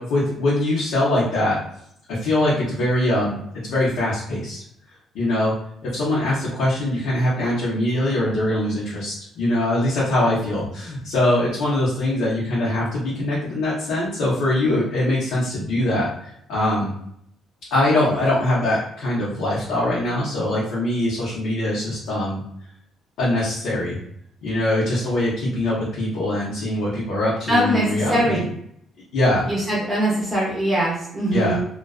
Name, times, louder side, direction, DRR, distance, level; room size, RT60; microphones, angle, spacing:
voice 1, 0.0-1.6 2.1-4.6 5.1-5.5 5.8-16.9 17.7-22.4 23.2-24.0 24.4-28.4 29.1-29.5 31.3-31.6, left 1 dB, 85° left, -8 dB, 0.8 m, -22 dB
voice 2, 27.5-28.4 29.5-31.6, right 1 dB, 20° right, -5 dB, 0.6 m, -22 dB
2.4 x 2.2 x 2.3 m, 0.70 s
cardioid pair, 145°, 0 cm